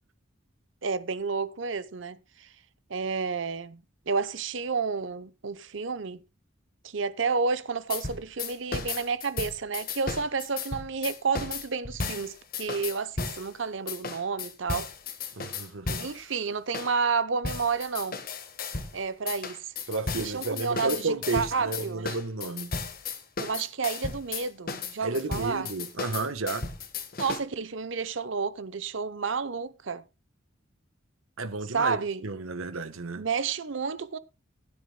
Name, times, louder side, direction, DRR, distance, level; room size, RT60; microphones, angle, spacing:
voice 1, 0.8-2.5 2.9-6.2 6.8-14.9 16.0-18.2 18.9-19.7 20.2-22.1 23.4-25.7 27.2-30.0 31.7-32.2 33.2-34.2, right 5 dB, 65° right, 0.7 m, -30 dB
sound 1, 7.9-13.5 13.9-16.2 16.7-16.9 17.4-19.0 19.3-27.4, left 4 dB, 45° left, 1.4 m, -35 dB
voice 2, 15.3-16.1 19.9-22.7 25.0-26.7 31.4-32.0 32.2-33.3, right 3 dB, 85° right, 1.1 m, -32 dB
19.5 x 9.8 x 2.2 m
head